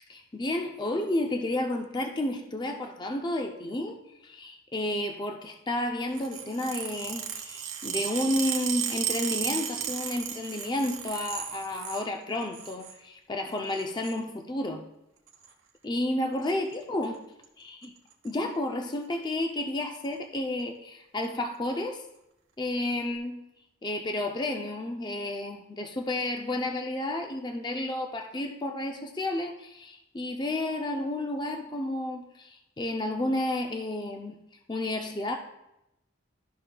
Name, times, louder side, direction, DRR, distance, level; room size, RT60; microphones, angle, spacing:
voice 1, 0.1-4.0 4.2-14.8 15.8-17.2 17.6-17.9 18.2-22.0 22.6-23.4 23.8-34.4 34.7-35.4, left 1 dB, 20° left, 3 dB, 0.4 m, -31 dB
sound 1, 6.1-12.1 12.4-13.0 13.7-14.2 15.3-15.5 16.5-16.7 17.0-17.2 17.4-17.5 17.8-18.3 18.9-19.0 19.9-20.1, right 9 dB, 85° right, 1.0 m, -34 dB
12.5 x 5.5 x 2.2 m, 0.86 s
head